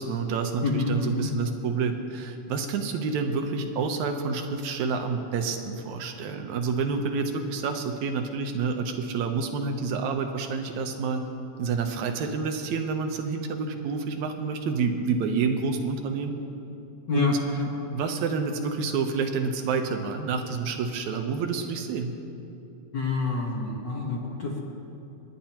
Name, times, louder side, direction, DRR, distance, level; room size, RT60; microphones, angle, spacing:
voice 1, 0.0-11.2 11.6-16.3 17.1-17.4 17.9-22.2, right 5 dB, 70° right, 5 dB, 2.0 m, -28 dB
voice 2, 0.6-1.3 17.1-17.7 22.9-24.6, left 3 dB, 55° left, -2 dB, 1.2 m, -27 dB
30.0 x 10.5 x 2.9 m, 2.8 s
omnidirectional pair, 3.7 m